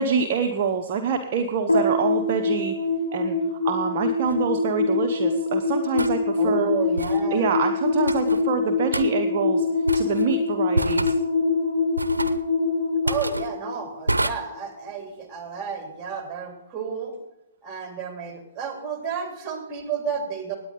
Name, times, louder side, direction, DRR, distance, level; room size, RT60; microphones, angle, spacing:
voice 1, 0.0-2.8 3.1-3.4 3.6-6.7 7.3-9.7 9.9-11.2, right 6 dB, 40° right, 4 dB, 0.9 m, -26 dB
sound 1, 1.7-14.2, left 3 dB, 85° left, 4.7 m, -24 dB
sound 2, 4.3-4.4 6.0-6.2 7.0-7.2 8.1-8.4 8.9-9.1 9.9-10.3 10.7-11.2 12.0-12.4 13.1-13.5 14.1-14.3, right 1 dB, 85° right, 0.7 m, -27 dB
voice 2, 6.4-7.5 13.0-17.1 17.6-20.6, right 7 dB, 20° right, 3 dB, 3.1 m, -32 dB
18.0 x 9.4 x 3.9 m, 0.87 s
figure-of-eight pair, 120°, 0 cm